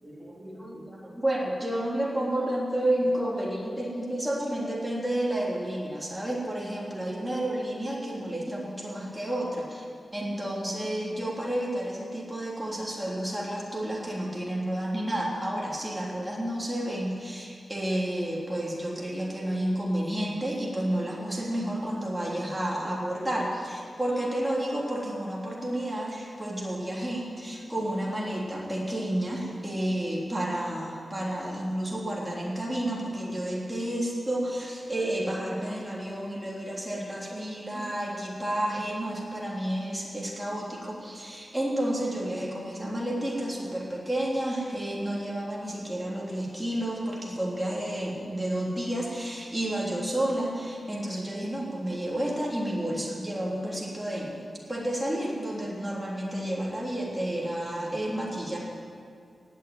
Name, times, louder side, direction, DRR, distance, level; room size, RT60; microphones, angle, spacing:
voice 1, 0.0-9.8 10.1-54.4 54.7-58.6, right 1 dB, 5° right, -5 dB, 3.3 m, -31 dB
18.0 x 6.9 x 9.6 m, 2.2 s
wide cardioid pair, 140°, 0 cm